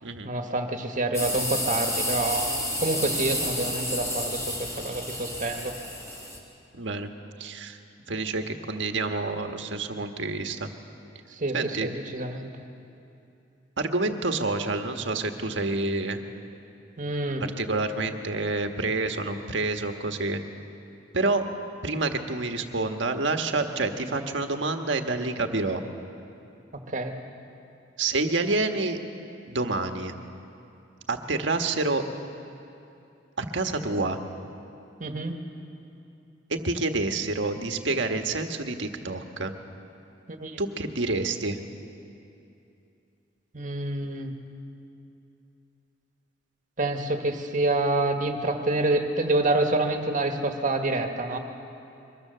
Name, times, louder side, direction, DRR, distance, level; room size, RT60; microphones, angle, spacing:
voice 1, 0.2-5.7 11.3-12.5 17.0-17.4 26.9-27.1 35.0-35.4 40.3-40.6 43.5-44.3 46.8-51.4, right 2 dB, 45° right, 4 dB, 1.7 m, -27 dB
sound 1, 1.1-6.4, left 1 dB, 15° left, 4.0 m, -30 dB
voice 2, 6.7-7.1 7.4-7.8 8.1-10.7 11.5-11.9 13.8-16.2 17.6-20.4 21.1-21.4 21.8-25.8 28.0-29.0 29.5-30.1 31.1-32.0 33.4-34.2 36.5-39.5 40.6-41.6, right 3 dB, 75° right, 5 dB, 1.5 m, -28 dB
23.5 x 22.0 x 6.8 m, 2.8 s
head